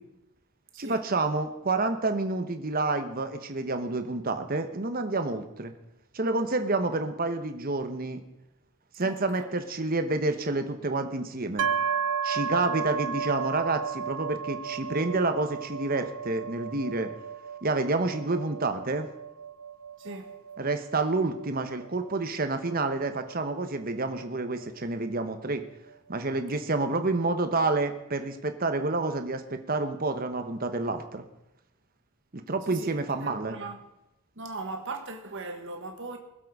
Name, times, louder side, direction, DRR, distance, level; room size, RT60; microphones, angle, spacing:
voice 1, 0.8-5.7 6.1-8.2 9.0-11.7 12.2-17.1 17.6-19.1 20.6-25.6 26.1-31.2 32.3-33.6, right 3 dB, 40° right, 1.0 m, -29 dB
voice 2, 9.0-9.5 20.0-20.3 32.7-33.8 34.4-36.2, right 3 dB, 55° right, 1.5 m, -39 dB
sound 1, 11.6-25.3, right 6 dB, 75° right, 0.5 m, -34 dB
21.0 x 7.7 x 4.8 m
head